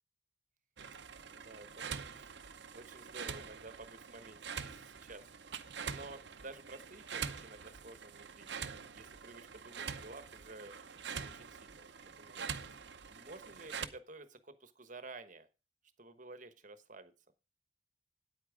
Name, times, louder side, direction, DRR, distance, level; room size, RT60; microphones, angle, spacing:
sound 1, 0.8-13.9, right 6 dB, 65° right, 0.7 m, -45 dB
voice 1, 1.3-1.9 2.1-8.5 8.9-10.8 11.2-11.9 12.2-15.5 16.0-17.1, right 2 dB, 40° right, 11 dB, 1.1 m, -52 dB
9.0 x 8.6 x 5.0 m, 0.31 s
head